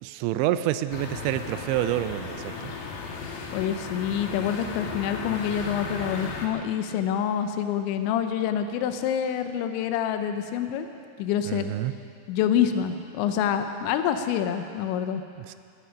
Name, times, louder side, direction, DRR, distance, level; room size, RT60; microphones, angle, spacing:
voice 1, 0.0-2.7 11.5-11.9 15.4-15.6, right 13 dB, 85° right, 12 dB, 2.9 m, -28 dB
sound 1, 0.9-6.5, left 4 dB, 65° left, 2.6 m, -36 dB
voice 2, 3.5-10.9 11.2-11.7 12.3-15.2, left 9 dB, 85° left, 8 dB, 3.1 m, -27 dB
17.0 x 15.5 x 5.1 m, 2.4 s
omnidirectional pair, 5.2 m